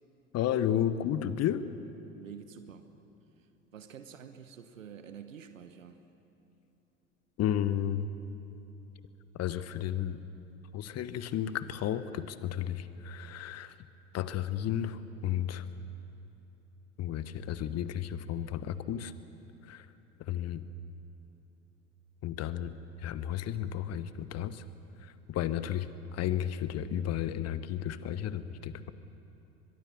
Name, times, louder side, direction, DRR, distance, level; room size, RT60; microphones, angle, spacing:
voice 1, 0.3-1.7 7.4-8.1 9.3-10.2 10.7-13.8 14.1-15.7 17.0-19.1 19.6-19.9 20.2-20.6 22.2-24.6 25.0-28.9, left 10 dB, 40° left, 13 dB, 1.2 m, -33 dB
voice 2, 2.1-2.9 3.4-6.0, right 8 dB, 85° right, 9 dB, 1.3 m, -48 dB
23.5 x 22.5 x 7.1 m, 3.0 s
hypercardioid pair, 75°, 38 cm